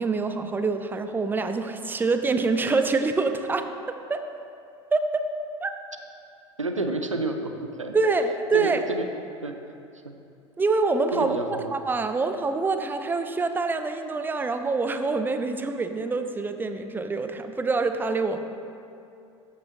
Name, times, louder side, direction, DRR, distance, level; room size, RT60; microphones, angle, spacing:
voice 1, 0.0-3.6 4.1-4.2 4.9-5.2 5.6-5.7 7.9-8.8 10.6-11.4 11.7-18.4, right 3 dB, 15° right, 7 dB, 0.5 m, -25 dB
voice 2, 6.6-8.0 8.5-9.1 9.4-9.6 10.0-10.1 11.1-11.8, right 2 dB, 90° right, 5 dB, 0.4 m, -29 dB
13.0 x 6.0 x 2.7 m, 2.6 s
figure-of-eight pair, 75°, 16 cm